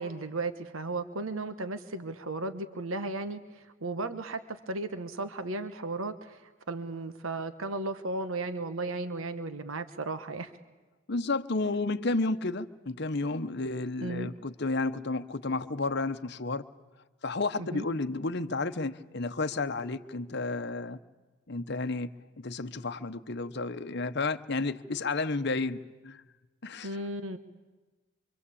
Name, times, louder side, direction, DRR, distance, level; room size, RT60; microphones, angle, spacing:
voice 1, 0.0-10.5 14.0-14.3 17.6-17.9 26.8-27.4, right 2 dB, 75° right, 11 dB, 1.2 m, -35 dB
voice 2, 11.1-16.7 17.2-21.0 21.5-26.2 26.6-27.0, left 3 dB, 50° left, 10 dB, 0.9 m, -32 dB
25.5 x 25.0 x 8.6 m, 1.2 s
head